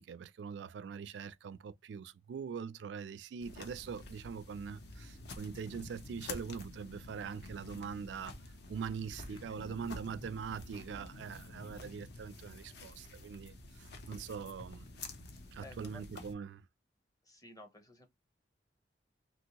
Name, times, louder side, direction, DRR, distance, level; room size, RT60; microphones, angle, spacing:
voice 1, 0.0-8.4 8.7-14.9 15.5-16.7, right 6 dB, 70° right, 0.3 m, -43 dB
sound 1, 3.4-16.3, left 2 dB, 65° left, 0.7 m, -49 dB
voice 2, 9.3-10.4 15.6-16.0 17.2-18.1, left 2 dB, 20° left, 0.7 m, -55 dB
2.9 x 2.6 x 2.9 m
head